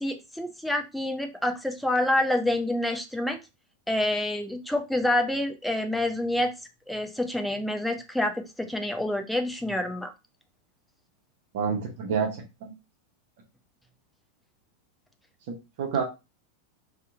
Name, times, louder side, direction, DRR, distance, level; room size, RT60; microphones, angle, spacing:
voice 1, 0.0-3.4 3.9-6.5 6.9-10.1, left 1 dB, ahead, 4 dB, 0.4 m, -27 dB
voice 2, 11.5-12.7 15.5-16.0, right 6 dB, 50° right, 2 dB, 0.6 m, -29 dB
2.7 x 2.0 x 2.5 m, 0.26 s
figure-of-eight pair, 90°, 0 cm